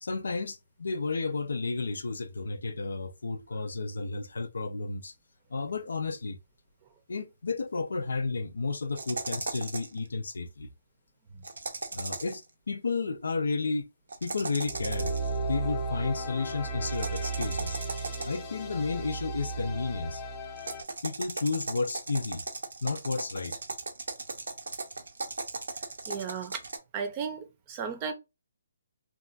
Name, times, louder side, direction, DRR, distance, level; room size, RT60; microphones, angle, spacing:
voice 1, 0.0-5.1 5.5-6.4 7.1-10.7 11.9-13.8 14.2-17.8 18.2-20.2 21.0-22.4 22.8-23.6, left 3 dB, 80° left, 0.4 m, -32 dB
sound 1, 8.9-10.0 11.4-12.4 14.1-15.4 16.9-18.5 20.6-26.8, right 3 dB, 90° right, 0.7 m, -37 dB
sound 2, 14.6-20.8, right 3 dB, 15° left, 0.6 m, -34 dB
voice 2, 26.1-26.6 26.9-28.1, right 6 dB, 25° right, 0.6 m, -34 dB
2.9 x 2.3 x 2.5 m
hypercardioid pair, 160°, 0 cm